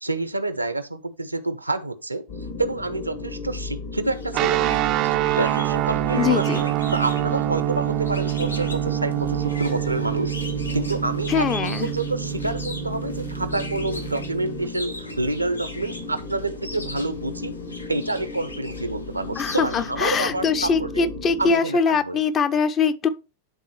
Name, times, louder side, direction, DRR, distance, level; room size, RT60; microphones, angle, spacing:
voice 1, 0.0-2.2 2.6-4.6 5.4-10.3 10.7-17.5 17.9-21.1 21.4-22.2, right 2 dB, 85° right, 0.7 m, -28 dB
sound 1, 2.3-21.5, left 3 dB, 55° left, 1.8 m, -35 dB
sound 2, 4.0-20.5, left 2 dB, 80° left, 0.9 m, -41 dB
sound 3, 4.3-14.7, right 17 dB, 40° right, 0.4 m, -26 dB
voice 2, 6.1-6.6 11.3-11.9 19.4-23.1, left 5 dB, 25° left, 0.6 m, -22 dB
11.0 x 3.8 x 3.1 m
figure-of-eight pair, 90°, 0 cm